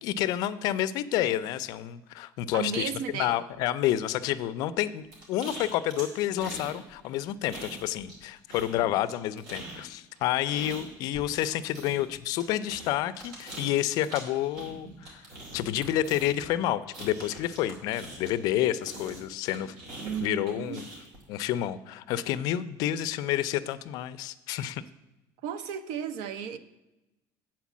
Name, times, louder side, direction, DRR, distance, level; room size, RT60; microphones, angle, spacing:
voice 1, 0.0-15.3 15.5-19.7 20.2-20.9 21.3-24.8, left 12 dB, 60° left, 0.4 m, -29 dB
voice 2, 2.5-3.4 20.0-20.8 25.4-26.6, right 7 dB, 80° right, 0.6 m, -34 dB
sound 1, 5.1-6.8 7.0-8.2 8.5-18.5 18.8-21.2, right 1 dB, 60° right, 2.8 m, -43 dB
8.2 x 4.5 x 7.1 m
cardioid pair, 165°, 7 cm